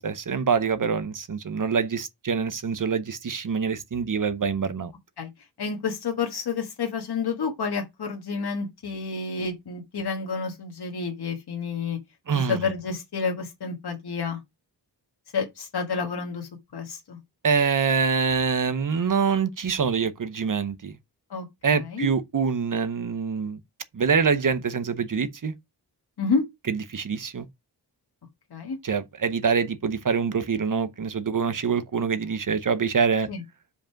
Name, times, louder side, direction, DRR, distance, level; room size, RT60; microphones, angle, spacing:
voice 1, 0.0-4.9 12.3-12.6 17.4-21.0 21.6-23.6 23.9-25.5 26.7-27.5 28.8-33.3, right 6 dB, 50° right, 0.8 m, -25 dB
voice 2, 5.6-12.0 12.3-14.4 15.3-17.2 21.3-21.5 21.7-22.1 26.2-26.4 28.5-28.8 33.3-33.4, left 5 dB, 65° left, 1.5 m, -29 dB
5.1 x 5.1 x 5.7 m
wide cardioid pair, 130°, 41 cm